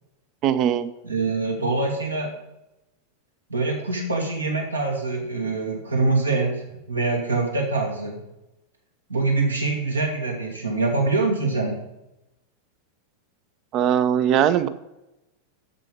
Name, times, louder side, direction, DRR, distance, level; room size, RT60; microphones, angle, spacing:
voice 1, 0.4-0.9 13.7-14.7, right 9 dB, 35° right, 14 dB, 0.5 m, -20 dB
voice 2, 1.0-2.3 3.5-8.2 9.1-11.8, right 3 dB, 80° right, 1 dB, 1.9 m, -24 dB
7.4 x 7.4 x 5.2 m, 0.93 s
figure-of-eight pair, 90°, 0 cm